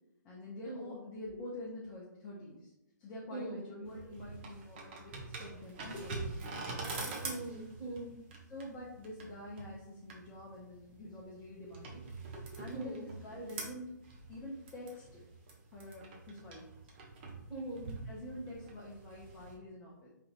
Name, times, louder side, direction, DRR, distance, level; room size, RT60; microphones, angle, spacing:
voice 1, 0.2-2.7 3.0-7.4 8.5-12.0 12.5-13.9 14.3-15.2 15.7-16.7 18.0-20.1, left 1 dB, 15° left, -6 dB, 0.7 m, -46 dB
sound 1, 3.8-19.5, right 3 dB, 35° right, 0.8 m, -46 dB
voice 2, 7.2-8.1 12.7-13.0 17.5-17.9, right 2 dB, ahead, -9 dB, 1.6 m, -41 dB
4.8 x 3.5 x 2.5 m, 0.85 s
figure-of-eight pair, 130°, 10 cm